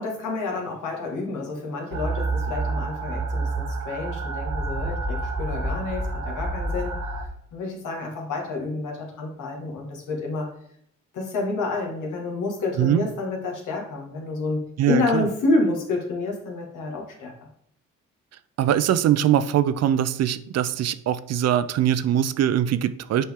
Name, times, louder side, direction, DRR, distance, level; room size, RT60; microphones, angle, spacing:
voice 1, 0.0-7.0 7.5-10.5 11.1-14.6 14.9-17.5, left 3 dB, 80° left, 0 dB, 1.8 m, -29 dB
sound 1, 1.9-7.3, right 2 dB, 85° right, 0.9 m, -28 dB
voice 2, 14.8-15.3 18.6-23.2, right 10 dB, 60° right, 14 dB, 0.5 m, -22 dB
7.4 x 4.3 x 3.6 m, 0.68 s
cardioid pair, 90°, 30 cm